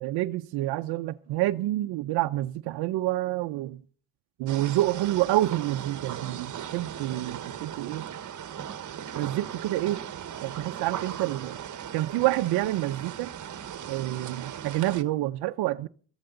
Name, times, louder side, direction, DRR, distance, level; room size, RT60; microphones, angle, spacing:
voice 1, 0.0-3.8 4.4-8.1 9.2-10.0 10.4-11.6 11.9-13.3 13.9-15.9, right 16 dB, 70° right, 0.7 m, -28 dB
sound 1, 4.5-15.0, right 9 dB, 45° right, 1.4 m, -38 dB
22.0 x 14.5 x 3.9 m
supercardioid pair, 70°, 41 cm